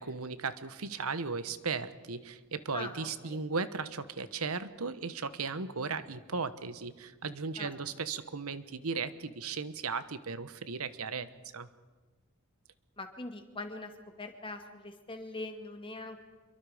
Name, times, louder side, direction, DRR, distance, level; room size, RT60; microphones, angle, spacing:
voice 1, 0.0-11.7, right 4 dB, 90° right, 13 dB, 1.2 m, -36 dB
voice 2, 2.7-3.4 7.6-7.7 13.0-13.9 14.2-16.2, left 2 dB, 25° left, 5 dB, 2.2 m, -42 dB
27.5 x 23.0 x 5.1 m, 1.3 s
head